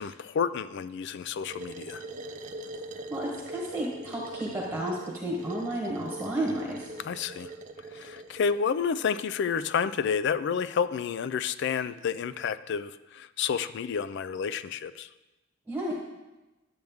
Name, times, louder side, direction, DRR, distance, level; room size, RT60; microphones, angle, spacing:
voice 1, 0.0-2.0 7.0-7.5 7.9-15.1, left 6 dB, 60° left, 14 dB, 0.4 m, -30 dB
sound 1, 1.5-8.6, right 2 dB, 40° right, 0.5 m, -42 dB
voice 2, 3.1-6.9 15.7-15.9, right 1 dB, 10° right, -3 dB, 1.1 m, -32 dB
10.5 x 7.7 x 3.5 m, 1.1 s
head